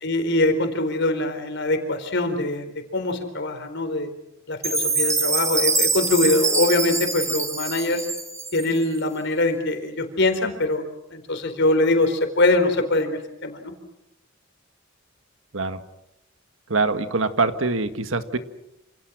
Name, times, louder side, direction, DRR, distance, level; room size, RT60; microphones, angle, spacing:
voice 1, 0.0-4.1 4.5-8.0 8.5-10.9 11.1-13.7, left 2 dB, 60° left, 7 dB, 4.3 m, -23 dB
Chime, 4.6-8.8, right 4 dB, 15° right, 2.1 m, -24 dB
voice 2, 16.7-18.4, right 3 dB, 75° right, 9 dB, 1.7 m, -24 dB
28.0 x 28.0 x 6.3 m, 0.86 s
head